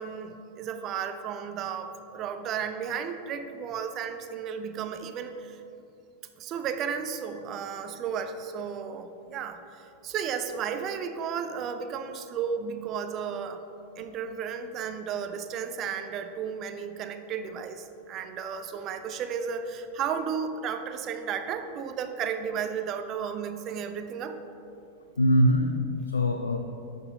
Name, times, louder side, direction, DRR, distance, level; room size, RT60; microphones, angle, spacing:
voice 1, 0.0-5.6 6.4-13.6 14.0-24.4, right 7 dB, 35° right, 7 dB, 0.5 m, -33 dB
voice 2, 25.2-26.6, equal, 75° left, 5 dB, 0.4 m, -23 dB
11.0 x 3.8 x 4.0 m, 2.6 s
figure-of-eight pair, 90°, 0 cm